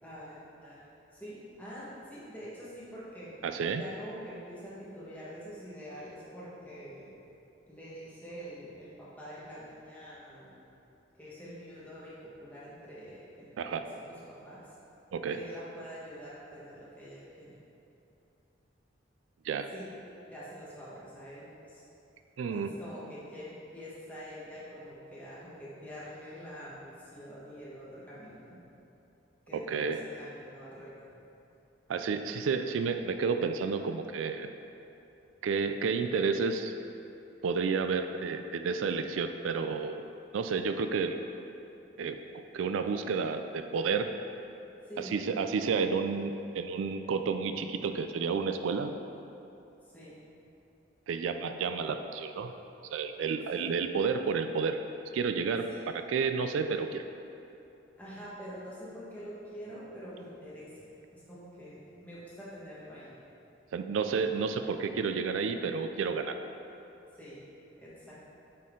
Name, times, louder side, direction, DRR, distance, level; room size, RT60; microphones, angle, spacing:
voice 1, 0.0-0.9 1.1-3.3 3.7-7.1 7.7-10.5 11.2-14.6 15.3-17.6 19.7-19.8 20.3-21.8 22.5-28.5 29.5-31.2 44.9-45.1 49.9-50.1 53.5-53.7 55.7-55.9 58.0-60.7 61.1-63.1 67.2-67.4 67.8-68.1, equal, 10° left, -9 dB, 1.4 m, -46 dB
voice 2, 3.4-3.8 13.6-13.8 15.1-15.4 19.4-19.7 22.4-22.7 29.5-30.0 31.9-34.5 35.4-36.7 37.4-40.0 40.3-41.2 42.0-44.1 45.0-49.0 51.1-52.5 52.9-54.8 55.1-57.0 63.7-66.4, right 5 dB, 85° right, 8 dB, 0.3 m, -31 dB
8.3 x 4.2 x 3.8 m, 2.9 s
head